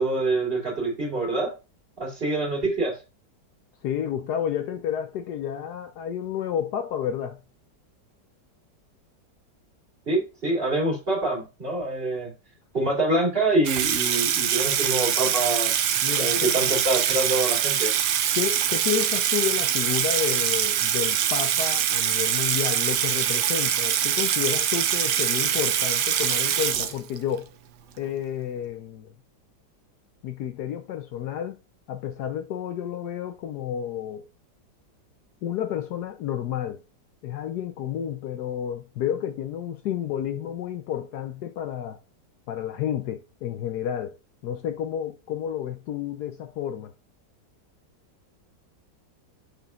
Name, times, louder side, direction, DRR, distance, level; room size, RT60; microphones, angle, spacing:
voice 1, 0.0-1.5 2.0-2.9 10.1-12.3 12.7-15.7 16.2-17.9, right 2 dB, 30° right, 2.9 m, -25 dB
voice 2, 3.8-7.4 16.0-16.5 18.4-27.5 28.0-29.1 30.2-31.6 31.9-34.2 35.4-36.8 37.2-42.0 42.5-44.1 44.4-46.9, left 9 dB, 70° left, 1.1 m, -30 dB
Water tap faucet / Sink (filling or washing), 13.7-27.4, right 10 dB, 70° right, 1.3 m, -24 dB
6.8 x 6.1 x 2.4 m
omnidirectional pair, 1.9 m